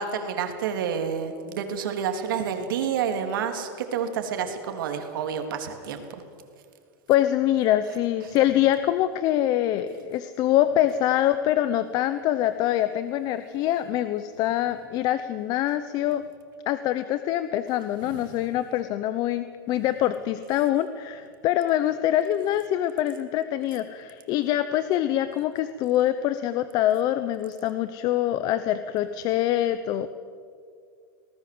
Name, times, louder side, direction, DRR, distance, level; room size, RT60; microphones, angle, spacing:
voice 1, 0.0-6.0 18.0-18.2, right 7 dB, 75° right, 6 dB, 3.5 m, -29 dB
voice 2, 7.1-16.2 16.7-30.1, left 12 dB, 35° left, 12 dB, 0.9 m, -24 dB
27.0 x 18.5 x 7.9 m, 2.3 s
supercardioid pair, 155°, 11 cm